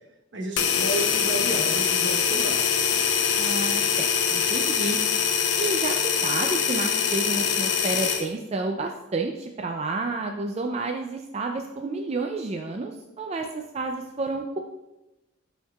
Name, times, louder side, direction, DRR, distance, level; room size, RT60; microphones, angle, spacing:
voice 1, 0.3-2.6, right 2 dB, 65° right, 1 dB, 1.1 m, -31 dB
sound 1, 0.6-8.3, left 7 dB, 65° left, 0.7 m, -24 dB
voice 2, 3.4-5.0 5.6-14.6, right 3 dB, 35° right, 3 dB, 0.4 m, -30 dB
12.0 x 4.5 x 2.3 m, 0.98 s
head